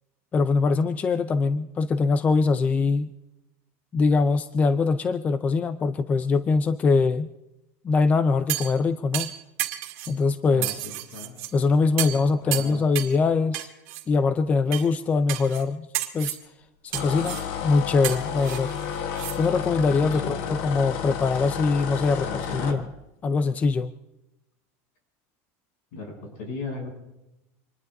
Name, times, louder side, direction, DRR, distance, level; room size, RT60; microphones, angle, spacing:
voice 1, 0.3-3.1 3.9-7.3 7.8-9.3 10.1-10.8 11.5-13.7 14.1-15.9 16.1-16.4 16.8-18.7 19.0-22.3 22.5-22.8 23.2-23.9, left 4 dB, 20° left, 12 dB, 0.5 m, -23 dB
sound 1, 8.5-8.8 9.1-10.1 10.6-11.5 12.0-12.2 12.5-13.2 13.5-14.0 14.7-14.9 15.3-15.6 15.9-16.4 16.9-17.5 18.0-19.4 19.7-19.8, right 16 dB, 70° right, 2.0 m, -31 dB
voice 2, 10.5-11.4 12.2-12.9 20.0-20.4 22.2-22.9 25.9-26.9, left 3 dB, 75° left, 2 dB, 8.0 m, -37 dB
sound 2, 16.9-22.8, left 8 dB, 60° left, 1.3 m, -31 dB
26.0 x 20.5 x 2.7 m, 0.92 s
supercardioid pair, 160°, 8 cm